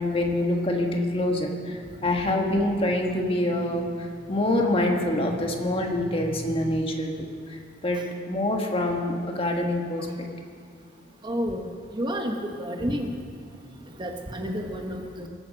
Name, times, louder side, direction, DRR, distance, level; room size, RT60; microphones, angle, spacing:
voice 1, 0.0-8.0 8.3-10.3, left 1 dB, 30° left, 2 dB, 1.5 m, -26 dB
voice 2, 11.2-11.6 11.9-13.1 14.0-15.3, equal, 25° right, 3 dB, 1.1 m, -30 dB
23.0 x 9.1 x 6.4 m, 2.2 s
head